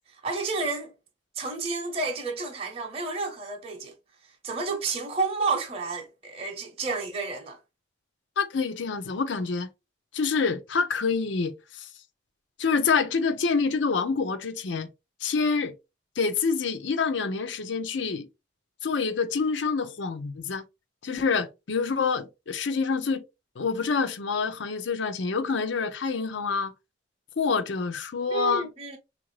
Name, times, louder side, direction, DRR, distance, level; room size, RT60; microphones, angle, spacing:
voice 1, 0.2-0.9 1.3-3.9 4.4-7.6 28.3-29.0, right 4 dB, 30° right, 0.7 m, -30 dB
voice 2, 8.4-9.7 10.1-11.9 12.6-14.9 15.2-15.7 16.2-18.3 18.8-20.6 21.0-23.2 23.6-26.7 27.4-28.7, left 5 dB, 75° left, 0.5 m, -27 dB
3.6 x 2.5 x 3.1 m
head